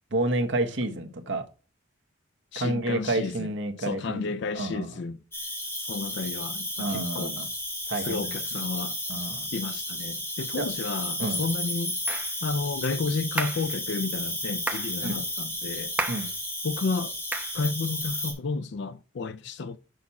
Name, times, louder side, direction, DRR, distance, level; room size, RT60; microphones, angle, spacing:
voice 1, 0.1-1.4 2.5-5.0 6.8-7.5 7.9-8.6 9.1-9.5 10.6-10.7 11.2-11.4 15.0-15.2 16.1-16.3, right 2 dB, 60° right, 1.2 m, -30 dB
voice 2, 2.5-3.5 3.8-5.2 5.8-7.3 8.0-9.0 9.5-12.0 12.4-15.9 16.6-17.1 17.5-19.8, left 4 dB, 55° left, 0.4 m, -32 dB
Cricket, 5.3-18.3, left 1 dB, 10° left, 2.1 m, -33 dB
sound 1, 12.1-12.3 13.4-13.7 14.7-14.9 16.0-16.3 17.3-17.6, right 2 dB, 5° right, 0.8 m, -31 dB
6.4 x 5.9 x 4.1 m
head